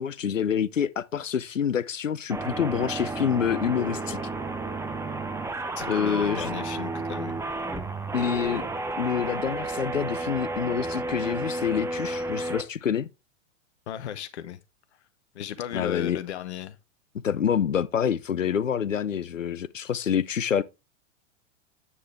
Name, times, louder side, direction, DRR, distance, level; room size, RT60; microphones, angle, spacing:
voice 1, 0.0-4.2 5.9-6.5 8.1-8.6 9.0-13.1 15.7-16.2 17.2-20.6, left 8 dB, 90° left, 0.5 m, -27 dB
sound 1, 2.3-12.6, right 2 dB, 5° right, 1.0 m, -32 dB
voice 2, 5.8-7.4 13.9-14.6 15.3-16.8, left 10 dB, 60° left, 0.9 m, -35 dB
9.7 x 6.6 x 3.4 m
figure-of-eight pair, 100°, 37 cm